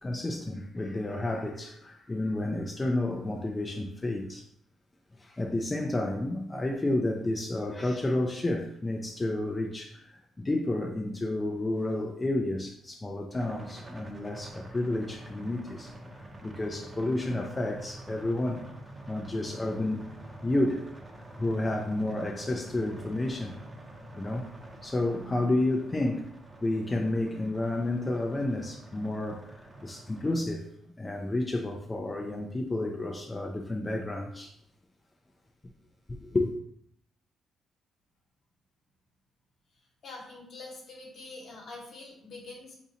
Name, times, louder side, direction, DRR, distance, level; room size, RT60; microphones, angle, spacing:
voice 1, 0.0-4.4 5.2-15.9 16.4-18.6 19.1-20.0 20.4-20.9 21.4-23.6 24.1-24.5 24.8-26.3 26.6-30.7 31.0-34.5 36.1-36.5, left 1 dB, 20° left, 0.4 m, -31 dB
sound 1, 13.3-30.4, right 1 dB, 15° right, 0.7 m, -47 dB
voice 2, 40.0-42.7, left 3 dB, 60° left, 1.1 m, -45 dB
3.9 x 2.6 x 2.8 m
cardioid pair, 90°, 0 cm